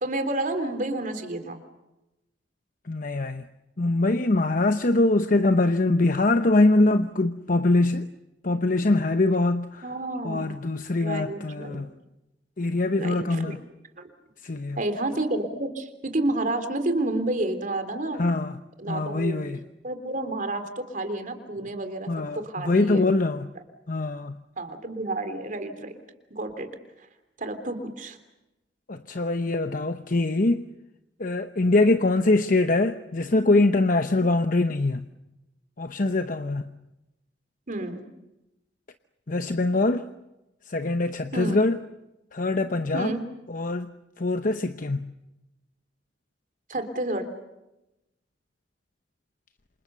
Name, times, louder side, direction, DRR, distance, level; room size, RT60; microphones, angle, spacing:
voice 1, 0.0-1.6 9.8-10.6 11.0-11.8 13.0-13.5 14.0-14.1 14.8-18.2 18.8-19.4 19.8-23.0 24.6-26.0 26.3-26.7 27.4-28.2 37.7-38.0 41.3-41.6 42.9-43.2 46.7-47.3, right 2 dB, 50° right, 3.3 m, -30 dB
voice 2, 2.9-3.5 3.8-8.1 8.4-9.8 10.2-11.9 12.6-13.6 14.4-14.8 18.2-18.6 18.9-19.6 22.1-23.5 23.9-24.4 28.9-30.7 31.2-35.1 35.8-36.8 39.3-40.0 40.7-41.8 42.3-43.1 43.5-43.9 44.2-45.1, left 2 dB, 50° left, 0.9 m, -23 dB
28.0 x 27.5 x 6.9 m
head